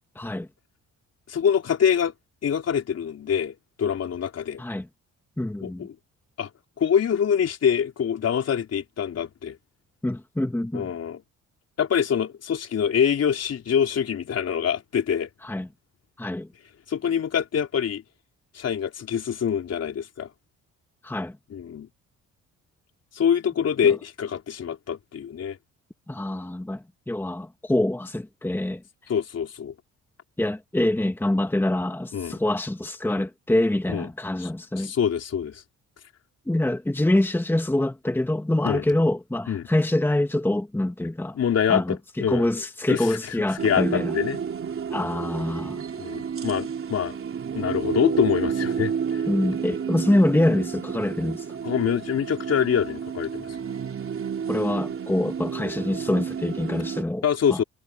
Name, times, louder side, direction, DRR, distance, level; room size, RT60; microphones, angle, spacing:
voice 1, 0.1-0.5 4.6-4.9 5.4-5.9 10.0-10.9 15.4-15.7 16.2-16.5 21.0-21.4 23.8-23.9 26.1-28.8 30.4-34.9 36.5-41.4 41.7-44.1 44.9-45.8 49.3-51.5 54.5-57.2 57.5-57.6, left 1 dB, 5° left, 1.6 m, -25 dB
voice 2, 1.3-2.1 2.4-4.6 5.6-6.0 6.4-6.5 6.8-9.6 10.7-11.2 11.8-15.3 16.9-18.0 18.5-20.3 21.5-21.9 23.1-25.6 29.1-29.7 32.1-32.4 33.9-34.1 34.4-34.5 34.8-35.6 38.6-38.8 39.5-39.7 41.3-42.5 42.9-43.2 43.6-44.4 46.0-47.2 47.5-49.2 51.6-53.5 57.2-57.6, left 8 dB, 55° left, 4.1 m, -25 dB
sound 1, 43.6-57.0, right 7 dB, 45° right, 3.3 m, -31 dB
cardioid pair, 90°, 30 cm